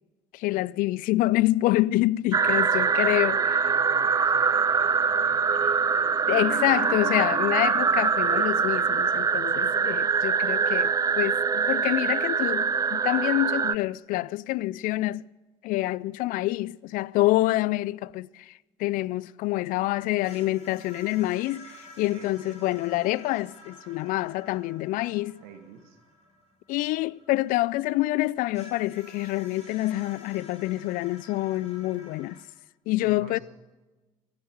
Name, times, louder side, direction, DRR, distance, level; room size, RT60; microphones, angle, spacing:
voice 1, 0.3-3.4 6.3-15.2 15.6-18.5 18.8-25.4 26.7-32.4 32.9-33.4, left 17 dB, 55° left, 0.4 m, -27 dB
sound 1, 2.3-13.7, right 6 dB, 20° right, 0.4 m, -24 dB
voice 2, 2.4-6.8 9.7-10.0 19.6-20.2 22.1-22.6 25.4-26.0 33.0-33.4, right 8 dB, 65° right, 1.5 m, -48 dB
sound 2, 20.2-27.9 28.5-32.4, left 1 dB, 40° left, 4.6 m, -51 dB
15.5 x 9.3 x 7.8 m
hypercardioid pair, 60°, 17 cm